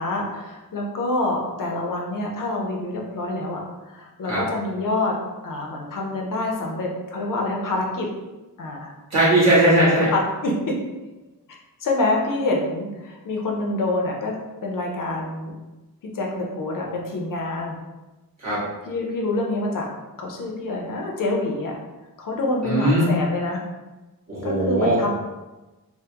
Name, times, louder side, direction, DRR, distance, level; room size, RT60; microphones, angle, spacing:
voice 1, 0.0-3.6 3.9-5.2 5.4-8.1 8.6-8.9 10.1-10.8 11.8-14.4 14.6-15.5 16.1-17.7 18.9-19.9 20.2-21.8 22.2-23.6 24.4-25.1, left 2 dB, 60° left, 0 dB, 0.6 m, -26 dB
voice 2, 9.1-10.1 18.4-18.6 22.6-23.0 24.3-25.0, right 1 dB, 45° right, -9 dB, 1.4 m, -19 dB
3.4 x 2.1 x 2.8 m, 1.1 s
wide cardioid pair, 140°, 37 cm